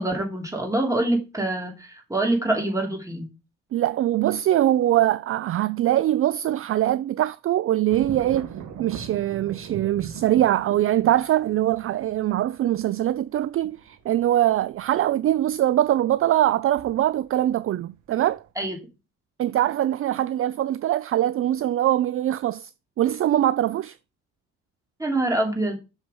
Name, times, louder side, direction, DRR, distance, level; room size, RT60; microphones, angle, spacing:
voice 1, 0.0-3.3 18.6-18.8 25.0-25.8, right 1 dB, 10° right, 3.3 m, -25 dB
voice 2, 3.7-8.5 8.8-18.4 19.4-22.7 23.0-23.9, right 13 dB, 45° right, 0.4 m, -22 dB
sound 1, 7.9-17.5 17.9-18.5, right 8 dB, 75° right, 1.4 m, -40 dB
6.7 x 5.7 x 5.3 m
cardioid pair, 90°, 30 cm